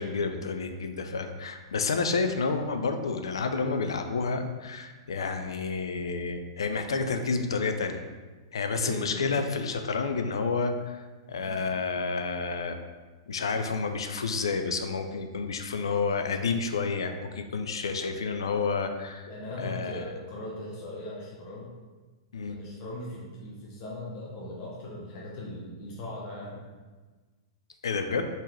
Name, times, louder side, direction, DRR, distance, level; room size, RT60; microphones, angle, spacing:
voice 1, 0.0-8.0 8.5-12.8 13.3-19.3 19.6-20.0 22.3-22.6 27.8-28.3, left 4 dB, 75° left, 7 dB, 0.4 m, -30 dB
voice 2, 8.7-9.3 13.4-13.5 19.3-21.7 22.5-26.6, left 1 dB, 45° left, -4 dB, 1.0 m, -39 dB
4.1 x 3.8 x 3.2 m, 1.3 s
hypercardioid pair, 105°, 3 cm